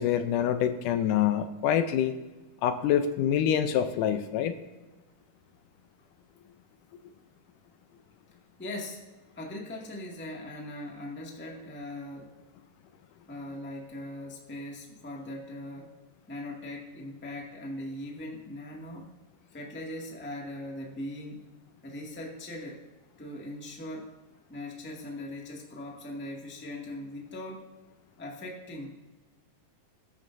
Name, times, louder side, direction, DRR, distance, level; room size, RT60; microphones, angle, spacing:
voice 1, 0.0-2.1 2.6-4.5, left 9 dB, 80° left, 9 dB, 2.1 m, -26 dB
voice 2, 8.6-9.1 9.3-12.3 13.3-16.0 16.3-19.1 19.5-21.5 21.8-22.8 23.2-24.2 24.5-27.7 28.2-28.9, left 1 dB, 5° left, -1 dB, 1.0 m, -40 dB
21.0 x 10.5 x 2.6 m, 1.2 s
omnidirectional pair, 3.9 m